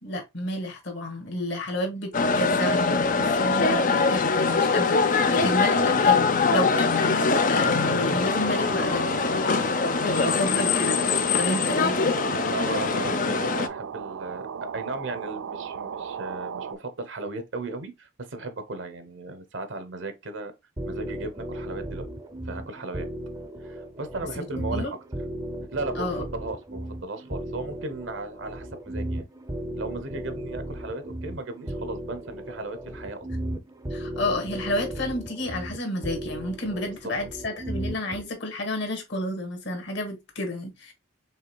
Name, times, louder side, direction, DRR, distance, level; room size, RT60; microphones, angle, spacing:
voice 1, 0.0-11.0 11.4-12.2 24.4-24.9 26.0-26.2 33.9-40.9, left 1 dB, 60° left, 1.7 m, -31 dB
sound 1, 2.1-13.7, left 4 dB, 40° left, 0.5 m, -23 dB
sound 2, 7.5-16.8, right 7 dB, 85° right, 0.4 m, -36 dB
voice 2, 12.5-20.5 20.8-22.1 22.5-23.1 23.6-25.0 25.7-29.2 29.8-33.3 37.0-37.1, right 2 dB, 65° right, 0.9 m, -36 dB
sound 3, 20.8-38.2, right 1 dB, 15° right, 0.6 m, -35 dB
5.5 x 3.8 x 2.2 m
head